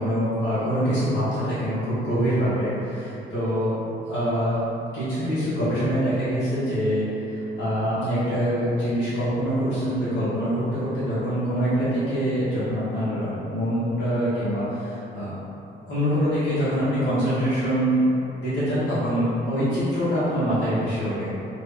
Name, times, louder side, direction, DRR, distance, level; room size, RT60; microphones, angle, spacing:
voice 1, 0.0-3.7 4.0-4.6 4.9-15.3 15.9-18.1 18.4-21.4, equal, 65° left, -12 dB, 1.3 m, -24 dB
3.0 x 2.6 x 3.5 m, 2.9 s
cardioid pair, 90°, 20 cm